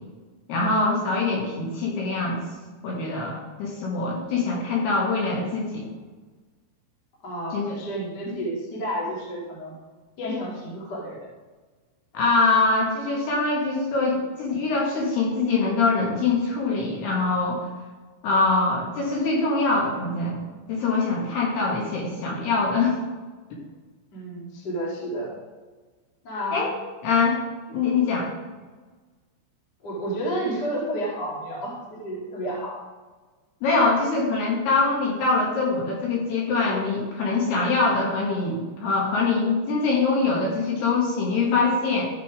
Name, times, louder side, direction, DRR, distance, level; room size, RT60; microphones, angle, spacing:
voice 1, 0.5-2.4 2.8-5.9 7.5-7.8 8.3-8.4 12.1-17.7 18.2-20.4 20.7-22.9 26.5-26.7 27.0-27.4 27.7-28.3 33.6-42.1, left 3 dB, 65° left, -3 dB, 3.2 m, -23 dB
voice 2, 7.2-9.7 10.2-11.3 24.1-25.4 26.2-26.6 29.8-32.8, right 1 dB, 40° left, -4 dB, 1.5 m, -31 dB
14.0 x 5.5 x 5.0 m, 1.3 s
omnidirectional pair, 6.0 m